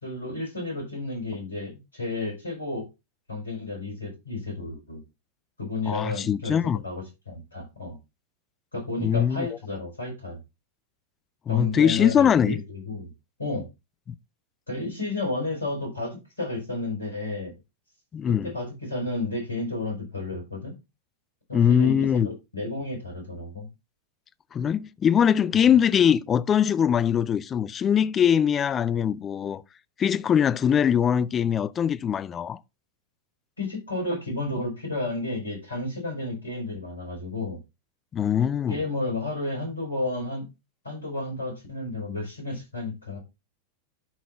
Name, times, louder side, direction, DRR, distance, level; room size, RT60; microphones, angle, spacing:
voice 1, 0.0-2.9 3.3-5.0 5.6-8.0 8.7-10.4 11.5-13.1 13.4-13.7 14.7-17.5 18.3-20.7 21.5-22.2 22.5-23.7 33.6-37.6 38.7-40.5 40.8-43.2, left 2 dB, 80° left, 5.8 m, -32 dB
voice 2, 5.9-6.8 9.0-9.5 11.5-12.6 18.1-18.5 21.5-22.3 24.5-29.6 30.0-32.6 38.1-38.8, left 8 dB, 25° left, 0.5 m, -22 dB
11.5 x 4.1 x 4.4 m
figure-of-eight pair, 90°, 0 cm